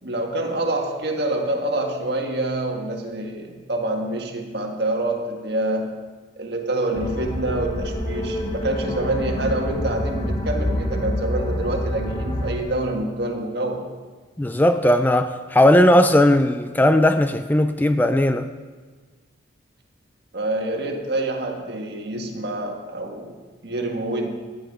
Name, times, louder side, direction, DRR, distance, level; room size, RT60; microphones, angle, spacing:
voice 1, 0.0-6.0 6.4-13.9 20.3-24.3, right 2 dB, 60° right, 1.7 m, -26 dB
sound 1, 6.9-12.6, left 1 dB, 30° left, 1.1 m, -27 dB
voice 2, 14.4-18.5, left 1 dB, 10° left, 0.3 m, -17 dB
15.5 x 9.9 x 4.8 m
head